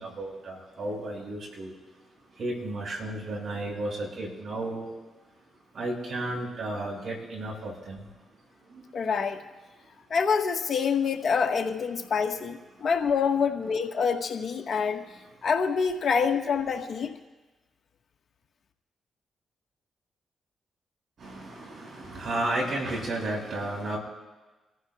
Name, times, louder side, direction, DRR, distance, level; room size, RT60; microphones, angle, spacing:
voice 1, 0.0-1.7 2.4-4.9 5.7-8.0 21.2-24.0, right 1 dB, 60° right, -1 dB, 6.3 m, -33 dB
voice 2, 8.9-9.4 10.1-15.0 15.4-17.1, left 6 dB, 60° left, 4 dB, 1.5 m, -26 dB
27.5 x 14.5 x 2.4 m, 1.2 s
supercardioid pair, 45°, 0 cm